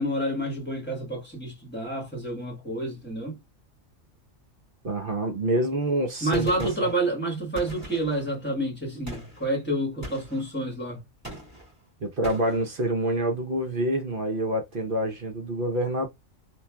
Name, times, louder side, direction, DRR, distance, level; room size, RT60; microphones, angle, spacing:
voice 1, 0.0-3.4 6.2-11.0, right 1 dB, 10° left, 1.2 m, -29 dB
voice 2, 4.8-6.5 6.8-6.9 12.0-16.1, right 1 dB, 50° right, 0.8 m, -27 dB
Gunshot gunfire, 6.3-7.0 7.6-8.3 9.1-9.5 10.0-10.5 11.2-11.7 12.2-12.6, equal, 10° right, 1.7 m, -40 dB
3.1 x 2.5 x 2.2 m
omnidirectional pair, 1.4 m